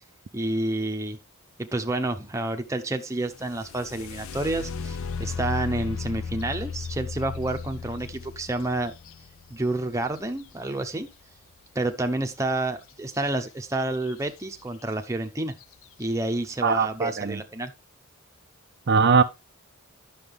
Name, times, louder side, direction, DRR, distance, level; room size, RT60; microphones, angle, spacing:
voice 1, 0.3-1.2 1.6-8.9 9.5-11.1 11.7-15.6 16.0-17.7, right 2 dB, 15° right, 0.8 m, -29 dB
sound 1, 3.3-11.1 13.2-13.3 13.7-14.3 14.9-15.0 15.5-15.8, left 5 dB, 60° left, 0.5 m, -35 dB
voice 2, 16.6-17.4 18.9-19.2, right 5 dB, 50° right, 0.5 m, -20 dB
9.8 x 6.3 x 3.5 m
head